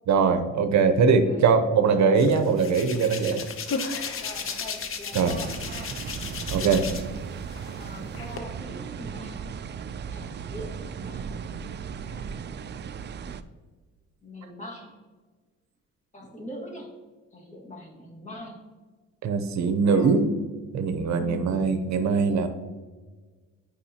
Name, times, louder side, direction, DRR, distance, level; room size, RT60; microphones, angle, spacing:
voice 1, 0.1-3.4 5.1-5.3 6.5-6.8 19.2-20.3 20.7-22.5, right 5 dB, 65° right, 8 dB, 0.7 m, -21 dB
Hands, 2.2-7.2 7.5-8.4, left 5 dB, 45° left, 0.7 m, -34 dB
voice 2, 4.2-6.0 7.8-9.4 10.1-11.4 14.2-14.9 16.1-17.0 17.3-18.7 19.8-20.3 21.1-21.6, equal, 25° left, -2 dB, 1.8 m, -42 dB
sound 1, 5.1-13.4, right 6 dB, 35° right, 0.4 m, -36 dB
8.4 x 5.1 x 2.8 m, 1.4 s
cardioid pair, 90°, 30 cm